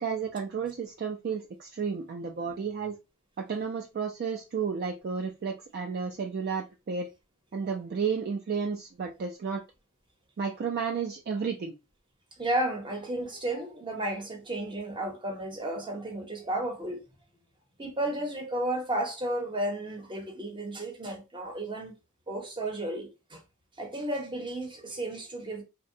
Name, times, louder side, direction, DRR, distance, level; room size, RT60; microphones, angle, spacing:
voice 1, 0.0-3.0 3.4-7.1 7.5-9.6 10.4-11.7, right 6 dB, 50° right, 0.3 m, -32 dB
voice 2, 12.4-17.0 17.8-21.9 22.3-23.4 23.8-25.6, right 1 dB, 25° right, 0.7 m, -33 dB
2.7 x 2.1 x 2.5 m
head